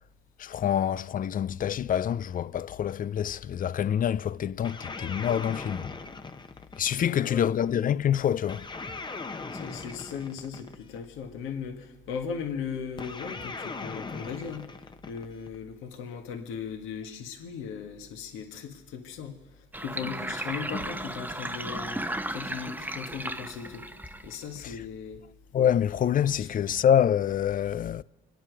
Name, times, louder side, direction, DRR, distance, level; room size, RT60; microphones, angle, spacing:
voice 1, 0.4-5.9 6.8-8.7 24.6-24.7 25.5-28.0, left 9 dB, 45° left, 0.4 m, -26 dB
sound 1, 4.6-7.2 8.5-11.0 13.0-15.5, left 3 dB, 20° left, 0.9 m, -39 dB
voice 2, 7.0-7.5 9.5-23.9 24.2-25.2 26.4-26.5, left 7 dB, 80° left, 1.8 m, -38 dB
Sink (filling or washing), 19.7-24.6, right 1 dB, 10° right, 0.9 m, -35 dB
26.0 x 10.5 x 4.8 m
supercardioid pair, 70°, 20 cm